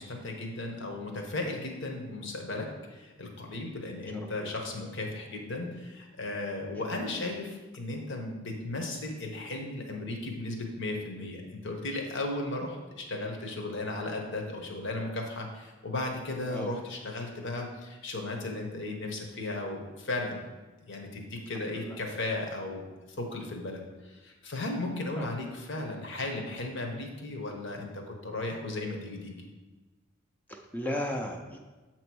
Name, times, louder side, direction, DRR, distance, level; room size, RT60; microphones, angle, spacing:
voice 1, 0.0-20.4 20.9-22.8 23.2-29.5, left 2 dB, 65° left, 2 dB, 1.1 m, -35 dB
voice 2, 4.1-4.5 7.1-7.3 16.5-16.7 21.6-22.0 25.2-25.3 30.5-31.6, left 1 dB, 10° left, 1 dB, 0.6 m, -36 dB
7.6 x 3.0 x 6.1 m, 1.2 s
head